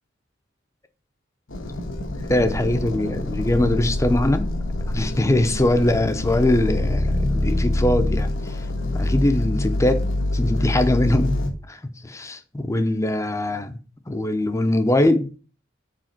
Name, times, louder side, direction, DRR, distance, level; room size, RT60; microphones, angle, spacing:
sound 1, 1.5-11.5, left 1 dB, 85° left, 1.4 m, -25 dB
voice 1, 2.3-4.6 4.9-8.6 8.9-10.0 10.3-11.4 11.7-13.8 14.1-15.3, left 1 dB, 15° left, 0.6 m, -22 dB
5.0 x 4.2 x 5.8 m
head